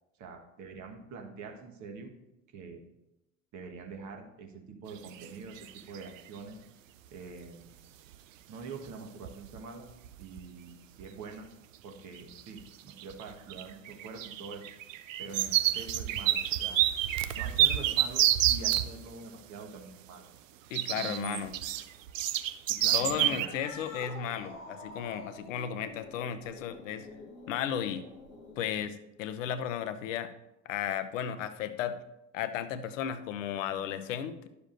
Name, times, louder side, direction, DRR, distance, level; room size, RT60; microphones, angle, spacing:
voice 1, 0.2-2.1 2.5-2.8 3.5-6.6 7.1-7.7 8.5-9.9 10.2-11.5 11.8-14.7 15.2-16.8 17.3-20.2 20.6-21.5 22.7-23.5, right 4 dB, 45° right, 3 dB, 1.4 m, -45 dB
sound 1, 5.0-5.3 5.6-6.2 8.1-8.2 8.9-9.0 9.2-9.6 9.9-10.5 11.0-11.1 12.2-12.6 12.9-18.9 20.7-23.5, right 13 dB, 75° right, 0.5 m, -28 dB
voice 2, 20.7-21.5 22.9-27.1 27.5-28.1 28.6-30.3 30.7-32.0 32.3-34.5, left 9 dB, 70° left, 11 dB, 0.7 m, -34 dB
Cat, 23.3-28.8, left 2 dB, 90° left, 1.3 m, -47 dB
11.0 x 6.8 x 2.6 m, 0.91 s
figure-of-eight pair, 70°, 39 cm